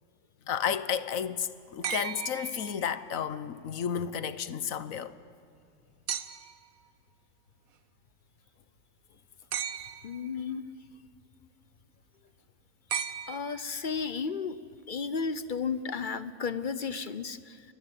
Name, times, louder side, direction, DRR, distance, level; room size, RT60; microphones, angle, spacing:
voice 1, 0.5-5.2, left 8 dB, 70° left, 1.3 m, -32 dB
sound 1, 1.8-3.2 6.1-6.7 9.5-10.3 12.9-13.9 15.5-15.6, right 8 dB, 80° right, 1.4 m, -36 dB
voice 2, 10.0-10.6 13.3-14.6 14.9-17.6, left 5 dB, 45° left, 0.8 m, -33 dB
27.5 x 22.0 x 8.7 m
omnidirectional pair, 1.5 m